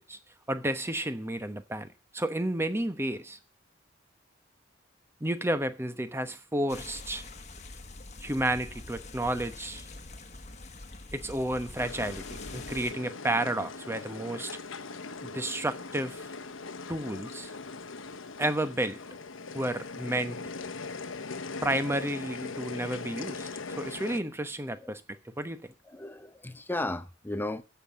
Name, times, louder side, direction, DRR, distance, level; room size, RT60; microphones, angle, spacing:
voice 1, 0.5-1.9 2.1-3.4 5.2-7.2 8.2-9.9 11.1-14.5 15.2-16.3 16.9-17.5 18.4-19.0 19.5-20.4 21.6-23.5 23.8-25.7, right 1 dB, 15° right, 1.0 m, -31 dB
sound 1, 6.7-12.9, left 2 dB, 35° left, 1.3 m, -45 dB
sound 2, 11.8-24.2, left 4 dB, 90° left, 1.0 m, -40 dB
voice 2, 25.9-27.6, left 2 dB, 10° left, 0.8 m, -35 dB
14.0 x 5.7 x 8.4 m
head